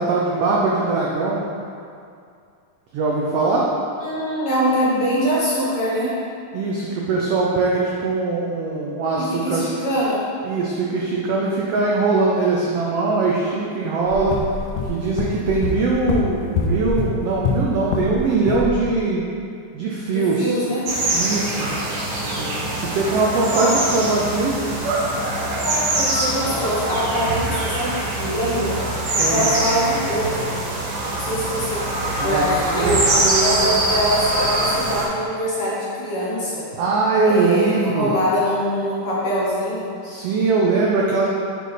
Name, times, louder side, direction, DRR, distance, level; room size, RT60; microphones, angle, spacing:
voice 1, 0.0-1.4 2.9-3.7 6.5-9.7 10.4-14.4 14.9-19.2 19.7-20.6 21.1-21.7 22.4-24.6 29.2-29.5 32.1-33.7 36.8-38.1 40.0-41.3, right 3 dB, 85° right, -3 dB, 1.3 m, -21 dB
voice 2, 4.0-6.1 9.2-10.2 20.0-20.8 23.5-23.7 25.6-28.8 29.1-30.5 31.1-31.8 32.2-33.0 33.4-36.7 37.2-39.9, equal, 55° left, -8 dB, 1.9 m, -23 dB
sound 1, 14.1-18.2 18.5-18.8, left 4 dB, 75° left, 1.6 m, -25 dB
sound 2, 20.9-35.1, right 1 dB, 60° right, 1.3 m, -23 dB
6.8 x 4.5 x 4.0 m, 2.4 s
omnidirectional pair, 3.5 m